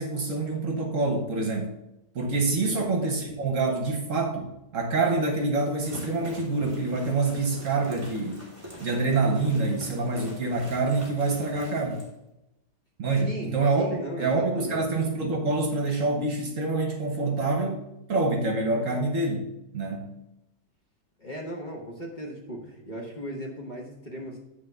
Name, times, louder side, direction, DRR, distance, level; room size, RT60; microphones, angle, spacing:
voice 1, 0.0-1.8 2.1-8.5 8.8-12.0 13.0-20.1, right 3 dB, 55° right, 3 dB, 1.2 m, -26 dB
sound 1, 5.6-12.1, equal, 20° right, 2.5 m, -44 dB
voice 2, 13.2-14.8 21.2-24.4, equal, 30° left, -2 dB, 1.1 m, -37 dB
9.5 x 3.5 x 6.5 m, 0.89 s
omnidirectional pair, 1.8 m